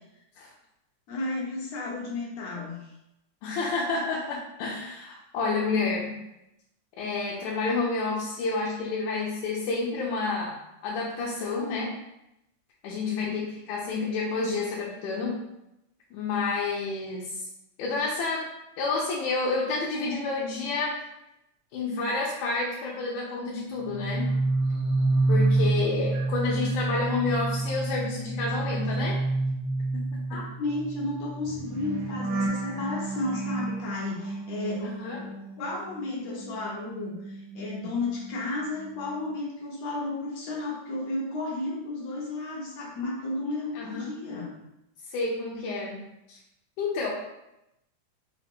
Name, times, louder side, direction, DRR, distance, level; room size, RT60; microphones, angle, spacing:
voice 1, 1.1-2.9 12.9-13.4 30.3-35.0 35.6-44.5, left 2 dB, 65° left, -4 dB, 1.9 m, -33 dB
voice 2, 3.4-6.1 7.0-12.0 12.8-15.4 16.1-17.4 17.8-18.5 18.8-21.0 21.7-24.3 25.3-29.2 29.9-30.2 34.8-35.2 43.8-44.1 45.1-46.0 46.3-46.4 46.8-47.1, left 3 dB, 80° left, -4 dB, 2.1 m, -29 dB
sound 1, 23.8-36.1 36.4-38.4 38.7-39.1, right 2 dB, 90° right, 1.2 m, -29 dB
5.1 x 2.4 x 3.4 m, 0.87 s
omnidirectional pair, 3.6 m